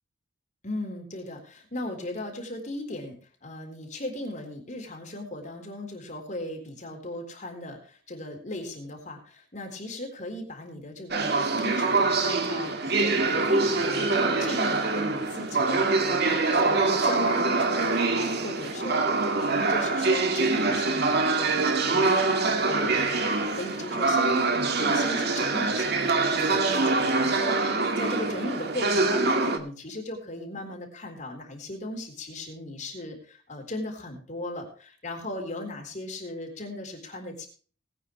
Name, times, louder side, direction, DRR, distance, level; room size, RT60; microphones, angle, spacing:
voice 1, 0.6-3.2 3.4-37.5, left 1 dB, 40° left, 2 dB, 3.9 m, -37 dB
sound 1, 11.1-29.6, right 3 dB, 60° right, 1.9 m, -24 dB
20.5 x 9.2 x 3.2 m, 0.41 s
head